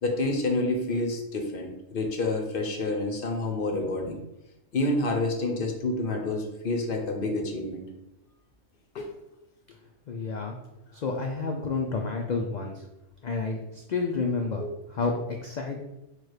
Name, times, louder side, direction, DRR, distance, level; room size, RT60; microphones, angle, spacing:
voice 1, 0.0-4.2 4.7-7.8 8.9-9.0 14.6-14.7, left 2 dB, 55° left, 3 dB, 0.8 m, -28 dB
voice 2, 10.1-10.6 10.9-12.9 13.2-14.6 14.9-15.8, left 4 dB, 70° left, 2 dB, 0.4 m, -30 dB
4.5 x 2.4 x 4.8 m, 0.92 s
omnidirectional pair, 1.3 m